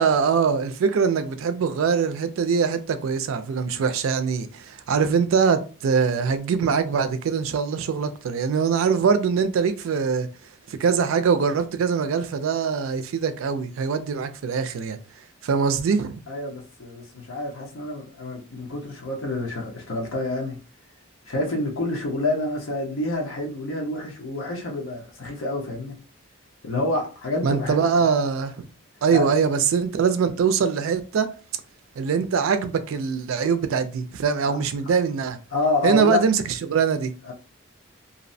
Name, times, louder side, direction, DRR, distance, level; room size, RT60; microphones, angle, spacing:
voice 1, 0.0-10.3 10.7-15.0 15.4-16.2 27.4-28.7 29.0-31.3 32.0-35.4 35.8-37.1, right 6 dB, 75° right, 0.3 m, -23 dB
voice 2, 16.3-20.6 21.3-26.0 26.6-27.8 29.1-29.3 34.5-34.6 35.5-36.2 37.2-37.3, left 2 dB, 75° left, 0.7 m, -28 dB
2.6 x 2.0 x 2.6 m
head